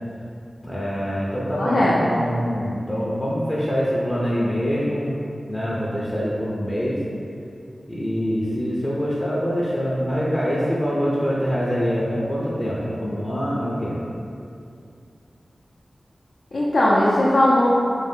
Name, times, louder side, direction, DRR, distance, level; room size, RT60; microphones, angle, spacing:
voice 1, 0.6-5.2 5.5-7.0 7.9-14.0, equal, 25° left, -6 dB, 0.6 m, -24 dB
voice 2, 1.5-2.0 16.5-17.7, left 1 dB, 70° left, -8 dB, 0.5 m, -18 dB
3.4 x 2.7 x 3.5 m, 2.6 s
cardioid pair, 45°, 0 cm